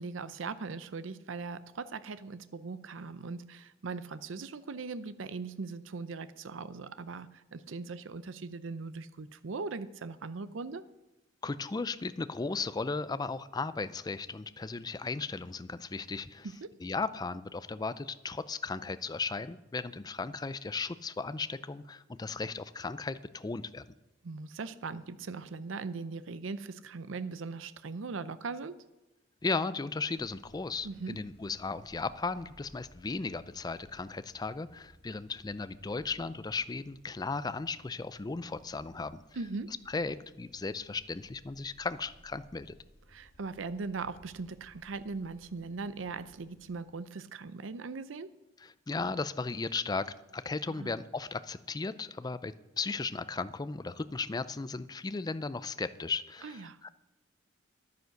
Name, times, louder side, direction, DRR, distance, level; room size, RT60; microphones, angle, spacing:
voice 1, 0.0-10.8 16.4-16.7 24.2-28.7 30.8-31.2 39.4-39.7 43.1-48.3 50.7-50.9 56.4-56.8, right 4 dB, 75° right, 13 dB, 0.6 m, -40 dB
voice 2, 11.4-16.5 16.8-23.8 29.4-39.2 39.9-42.7 48.6-56.9, left 4 dB, 20° left, 14 dB, 0.4 m, -36 dB
sound 1, 30.2-46.8, equal, 50° left, 2.3 m, -61 dB
10.5 x 9.5 x 6.5 m, 0.98 s
head